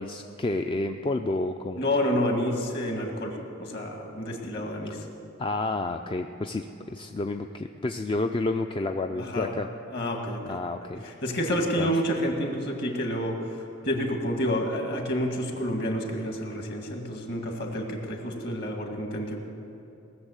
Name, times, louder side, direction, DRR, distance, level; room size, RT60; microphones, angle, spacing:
voice 1, 0.0-1.8 5.4-9.7 10.5-11.0 11.7-11.9, left 2 dB, 25° left, 6 dB, 0.4 m, -30 dB
voice 2, 1.8-5.0 9.1-9.5 9.9-10.6 11.0-19.4, equal, 55° left, 2 dB, 2.0 m, -29 dB
18.5 x 7.1 x 8.2 m, 2.9 s
head